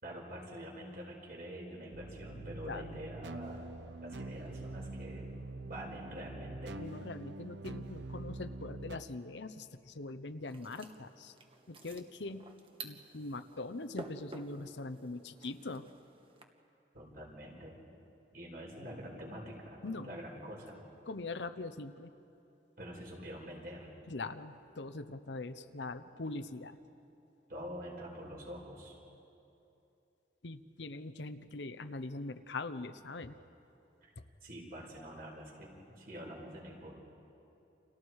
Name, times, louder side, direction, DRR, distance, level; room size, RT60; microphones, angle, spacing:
voice 1, 0.0-3.7 4.0-5.3 5.7-6.8 16.9-17.8 18.3-20.8 22.8-23.9 27.5-28.9 34.0-34.1 34.4-36.9, equal, 55° right, -2 dB, 5.7 m, -46 dB
sound 1, 1.9-9.0, right 2 dB, 75° right, 0.9 m, -45 dB
voice 2, 2.7-3.0 6.8-11.3 11.7-12.5 12.8-15.9 19.8-20.1 21.0-22.1 24.1-26.8 30.4-33.3, left 3 dB, 75° left, 10 dB, 0.9 m, -42 dB
sound 2, 10.4-16.4, right 2 dB, 30° right, 1.4 m, -51 dB
30.0 x 28.0 x 4.8 m, 2.9 s
head